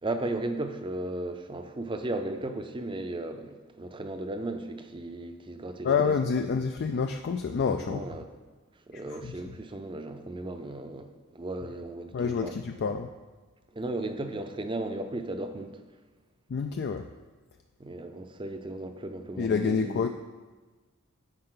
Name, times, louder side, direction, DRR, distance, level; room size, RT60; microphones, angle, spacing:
voice 1, 0.0-6.1 7.8-8.3 8.9-12.6 13.7-15.8 17.8-20.1, right 2 dB, 25° right, 7 dB, 0.5 m, -35 dB
voice 2, 5.8-8.0 9.1-9.3 12.1-13.1 16.5-17.1 19.4-20.1, left 5 dB, 50° left, 6 dB, 0.3 m, -28 dB
9.7 x 6.6 x 3.8 m, 1.3 s
head